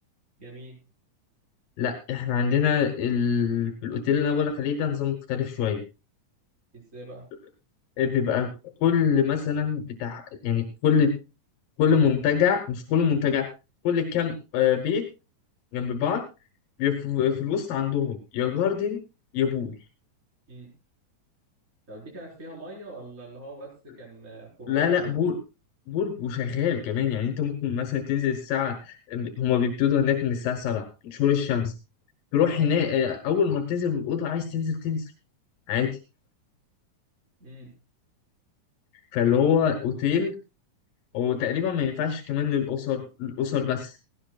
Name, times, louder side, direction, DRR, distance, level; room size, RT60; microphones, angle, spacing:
voice 1, 0.4-0.8 6.7-7.3 20.5-20.7 21.9-23.7 23.9-25.2 32.4-32.7 37.4-37.7, right 2 dB, 20° right, -2 dB, 4.8 m, -42 dB
voice 2, 1.8-5.8 8.0-8.5 8.8-11.1 11.8-13.5 13.8-15.1 15.7-16.3 16.8-19.0 19.3-19.8 24.7-25.4 25.9-31.7 32.3-35.1 35.7-36.0 39.1-40.3 41.1-44.0, left 8 dB, 85° left, 6 dB, 3.0 m, -25 dB
17.5 x 17.5 x 2.3 m, 0.29 s
omnidirectional pair, 3.9 m